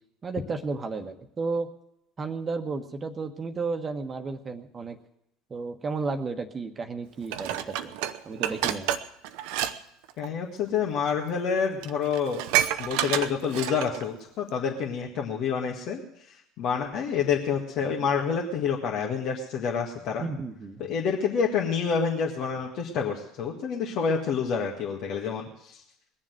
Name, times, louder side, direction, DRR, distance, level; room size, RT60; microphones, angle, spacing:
voice 1, 0.2-1.7 2.2-5.0 5.5-7.9 8.2-8.9 20.2-20.8, right 4 dB, 30° right, 6 dB, 1.3 m, -33 dB
Dishes pots and pans, 7.3-9.7 10.0-10.3 11.1-11.2 11.5-11.6 11.8-14.0 14.5-14.6, right 12 dB, 65° right, 0.7 m, -29 dB
voice 2, 10.2-12.4 12.8-16.0 16.3-20.3 20.8-25.8, left 6 dB, 55° left, 0 dB, 1.8 m, -28 dB
21.0 x 7.4 x 7.8 m, 0.78 s
hypercardioid pair, 70°, 0 cm